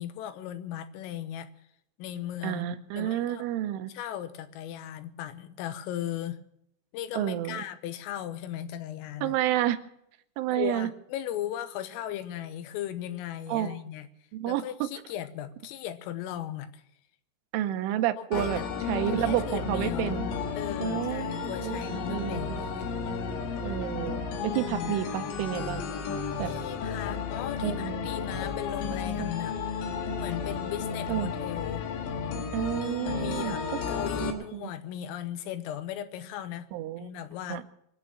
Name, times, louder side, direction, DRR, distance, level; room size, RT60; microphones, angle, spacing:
voice 1, 0.0-1.5 2.0-3.5 3.9-6.4 6.9-9.4 10.5-14.1 14.5-16.8 18.2-18.7 19.0-20.3 20.6-22.9 24.5-25.0 26.4-29.6 30.2-31.9 32.8-36.7 37.0-37.6, left 11 dB, 85° left, 11 dB, 3.7 m, -37 dB
voice 2, 2.4-3.9 7.1-7.6 9.2-9.8 10.4-10.9 13.5-13.8 14.3-14.9 17.5-18.6 18.9-20.2 20.8-22.7 23.6-25.8 26.4-26.5 27.6-28.1 31.1-31.3 32.5-33.6 34.2-34.6 36.7-37.1 37.5-37.6, right 13 dB, 80° right, 10 dB, 3.1 m, -30 dB
sound 1, 18.3-34.3, left 5 dB, 70° left, 3.7 m, -33 dB
23.5 x 8.8 x 7.0 m, 0.75 s
omnidirectional pair, 5.7 m